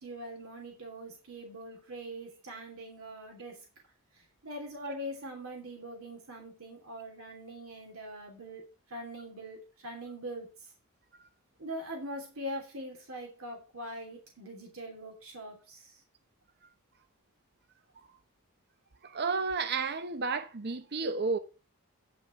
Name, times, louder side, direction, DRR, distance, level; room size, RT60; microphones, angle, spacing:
voice 1, 0.0-3.6 4.4-8.6 8.9-9.6 9.8-10.5 11.6-15.9, equal, 70° right, 3.1 m, -42 dB
voice 2, 19.0-21.4, right 4 dB, 50° right, 0.8 m, -32 dB
9.3 x 5.9 x 6.3 m
head